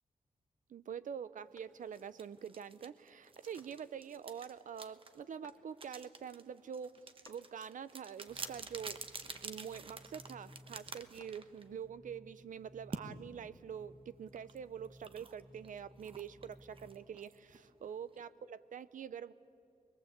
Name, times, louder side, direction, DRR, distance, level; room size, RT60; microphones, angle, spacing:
voice 1, 0.7-9.0 9.4-19.3, right 7 dB, 70° right, 15 dB, 0.7 m, -46 dB
sound 1, 1.5-2.2 2.6-2.7 3.5-4.2 5.4-6.1 7.2-8.9 9.3-9.8 10.8-11.8, left 3 dB, 30° left, 1.7 m, -65 dB
sound 2, 1.9-11.8 12.9-13.1 14.4-18.2, right 4 dB, 40° right, 1.2 m, -49 dB
sound 3, 8.3-16.9, equal, 20° right, 1.4 m, -60 dB
24.0 x 21.5 x 8.1 m, 2.6 s
wide cardioid pair, 130°, 14 cm